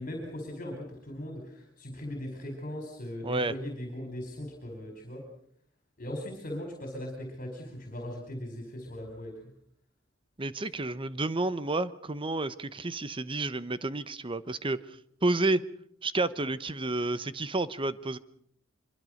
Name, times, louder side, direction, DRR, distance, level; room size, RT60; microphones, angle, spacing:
voice 1, 0.0-5.2 6.0-9.3 10.6-10.7, left 1 dB, 45° left, 4.7 m, -39 dB
voice 2, 3.2-3.5 10.4-14.8 15.2-15.6 16.0-18.2, right 2 dB, 25° right, 0.9 m, -30 dB
24.5 x 23.0 x 6.5 m
head